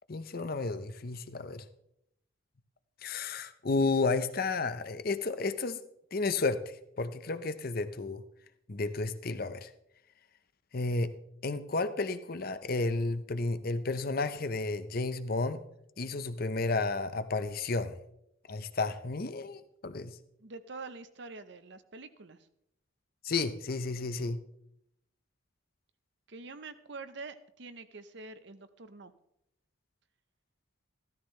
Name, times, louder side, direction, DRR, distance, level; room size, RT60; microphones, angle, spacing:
voice 1, 0.1-1.6 3.0-5.8 6.1-8.2 8.7-9.7 10.7-11.1 11.4-15.6 16.0-18.0 18.5-20.2 23.2-24.4, left 3 dB, 45° left, 11 dB, 0.7 m, -32 dB
voice 2, 20.4-22.5 26.3-29.1, right 3 dB, 55° right, 11 dB, 0.8 m, -46 dB
14.5 x 13.5 x 3.2 m, 0.77 s
head